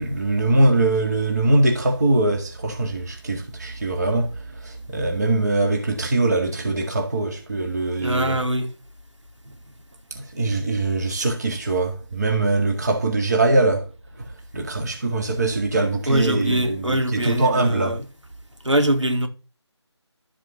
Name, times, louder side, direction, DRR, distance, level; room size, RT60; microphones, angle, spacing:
voice 1, 0.0-8.4 10.1-13.9 14.2-18.0, right 2 dB, 35° right, 1.9 m, -22 dB
voice 2, 8.0-8.7 9.5-9.6 16.1-18.1 18.6-19.3, right 1 dB, 85° right, 3.6 m, -23 dB
13.0 x 5.0 x 7.1 m
figure-of-eight pair, 165°, 15 cm